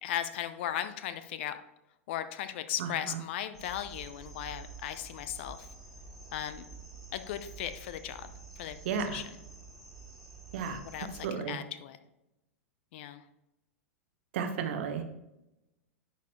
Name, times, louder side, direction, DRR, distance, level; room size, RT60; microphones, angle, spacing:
voice 1, 0.0-1.6 2.1-5.7 6.3-6.7 7.1-9.2 10.6-12.0 12.9-13.2, left 11 dB, 55° left, 11 dB, 0.6 m, -37 dB
voice 2, 2.8-3.2 8.8-9.2 10.5-10.8 11.2-11.6 14.3-15.1, right 6 dB, 60° right, 6 dB, 1.1 m, -33 dB
sound 1, 3.5-11.3, right 4 dB, 5° left, 2.3 m, -49 dB
10.5 x 4.4 x 3.1 m, 0.92 s
figure-of-eight pair, 95°, 7 cm